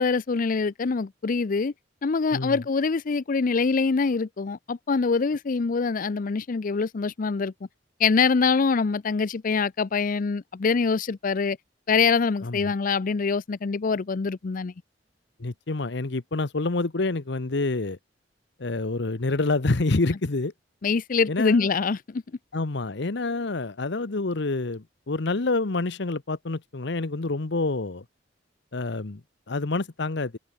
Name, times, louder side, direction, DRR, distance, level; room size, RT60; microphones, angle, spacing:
voice 1, 0.0-1.7 2.0-7.5 8.0-11.6 11.9-14.7 20.8-22.2, left 4 dB, 50° left, 0.5 m, -24 dB
voice 2, 12.4-12.7 15.4-18.0 18.6-20.5 21.3-21.7 22.5-28.0 28.7-30.4, left 3 dB, 65° left, 1.0 m, -27 dB
head